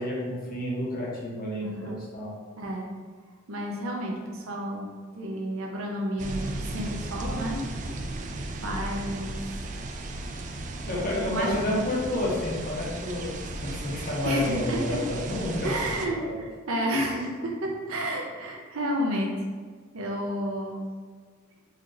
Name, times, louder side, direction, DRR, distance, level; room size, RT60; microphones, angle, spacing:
voice 1, 0.0-2.3 10.8-13.3 13.6-15.7 16.2-16.3, left 1 dB, 45° left, -5 dB, 1.0 m, -30 dB
voice 2, 1.6-2.0 2.6-2.9 3.5-4.9 5.1-7.6 8.6-9.4 11.3-11.8 14.2-15.0 15.6-19.4 19.9-20.8, equal, 75° right, 0 dB, 0.7 m, -31 dB
sound 1, 6.2-16.1, right 2 dB, 35° right, 0.3 m, -35 dB
4.3 x 3.0 x 2.5 m, 1.6 s
head